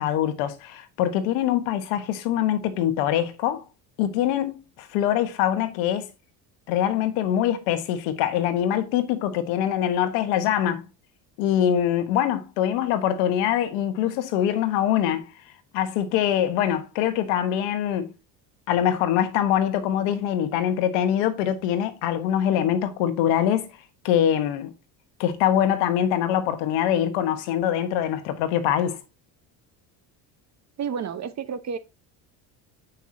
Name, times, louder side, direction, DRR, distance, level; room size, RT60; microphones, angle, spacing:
voice 1, 0.0-3.6 4.0-6.1 6.7-10.8 11.4-15.3 15.7-18.1 18.7-23.7 24.0-24.7 25.2-29.0, left 10 dB, 80° left, 1.4 m, -23 dB
voice 2, 30.8-31.8, right 7 dB, 40° right, 1.1 m, -30 dB
7.0 x 5.6 x 2.8 m
supercardioid pair, 95°, 43 cm